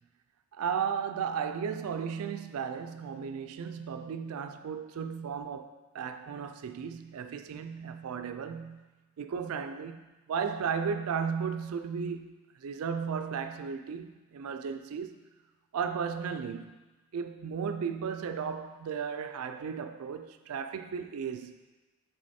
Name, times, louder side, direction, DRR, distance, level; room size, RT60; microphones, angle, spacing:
voice 1, 0.5-8.8 9.2-15.2 15.7-16.8 17.1-21.6, right 6 dB, 80° right, 0.4 m, -35 dB
6.2 x 3.9 x 4.2 m
head